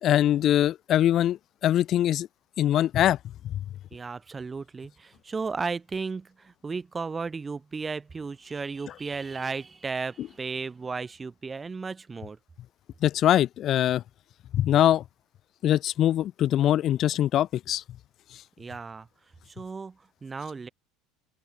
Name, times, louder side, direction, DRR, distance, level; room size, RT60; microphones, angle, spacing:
voice 1, 0.0-2.3 2.6-3.2 3.4-3.6 10.2-10.3 13.0-14.0 14.5-15.0 15.6-17.8, left 12 dB, 45° left, 0.3 m, -23 dB
voice 2, 3.9-12.4 18.6-19.1 19.6-20.7, right 4 dB, 20° right, 3.2 m, -34 dB
open air
supercardioid pair, 125°, 0 cm